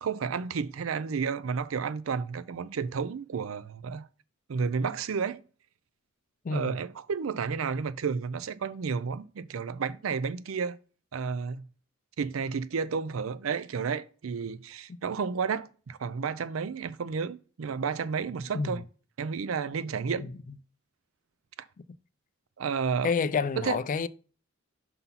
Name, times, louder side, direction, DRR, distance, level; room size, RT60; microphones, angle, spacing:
voice 1, 0.0-4.1 4.5-5.4 6.5-10.8 11.1-11.6 12.2-18.8 19.2-20.3 22.6-23.1 23.6-23.8, right 5 dB, 90° right, 0.5 m, -31 dB
voice 2, 6.4-6.8 18.5-18.8 20.2-20.6 23.0-24.1, left 5 dB, 40° left, 0.4 m, -29 dB
5.6 x 4.1 x 5.5 m
head